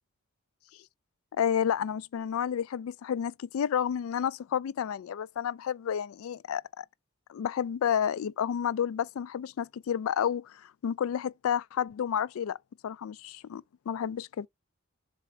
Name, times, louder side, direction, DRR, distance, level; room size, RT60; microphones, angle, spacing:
voice 1, 1.4-6.9 7.3-12.6 12.8-14.5, left 8 dB, 75° left, 0.3 m, -30 dB
7.5 x 2.5 x 5.0 m
head